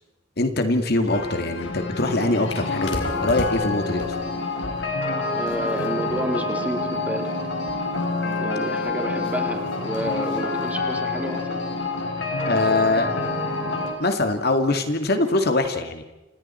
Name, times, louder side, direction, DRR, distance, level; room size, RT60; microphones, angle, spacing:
voice 1, 0.4-4.1 12.5-13.1 14.0-16.0, left 2 dB, 60° left, 6 dB, 2.2 m, -23 dB
sound 1, 1.1-13.9, left 3 dB, 80° left, 4.6 m, -27 dB
voice 2, 5.4-7.3 8.4-11.6, equal, 10° right, 3 dB, 3.1 m, -30 dB
29.0 x 27.5 x 4.5 m, 1.1 s
head